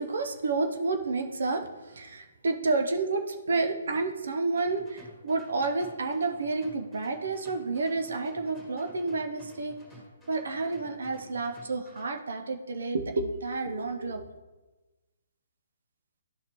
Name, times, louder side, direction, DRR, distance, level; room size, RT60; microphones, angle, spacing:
voice 1, 0.0-9.7 10.3-14.3, right 3 dB, 70° right, 5 dB, 0.7 m, -30 dB
sound 1, 4.5-12.1, equal, ahead, 2.1 m, -53 dB
12.0 x 4.1 x 3.0 m, 1.2 s
hypercardioid pair, 140°, 0 cm